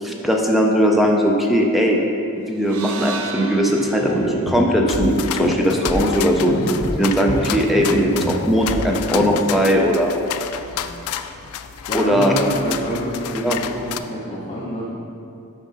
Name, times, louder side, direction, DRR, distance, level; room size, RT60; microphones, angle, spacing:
voice 1, 0.0-2.0 2.5-6.6 7.0-10.1 11.9-12.3 13.3-13.6, equal, ahead, 0 dB, 0.4 m, -19 dB
sound 1, 2.6-6.8, right 5 dB, 70° right, 0.5 m, -36 dB
sound 2, 3.7-9.4, equal, 55° left, 1.2 m, -25 dB
sound 3, 4.9-14.0, left 9 dB, 70° left, 0.3 m, -31 dB
voice 2, 11.9-14.9, equal, 30° left, -7 dB, 0.9 m, -28 dB
7.5 x 5.1 x 4.0 m, 2.6 s
head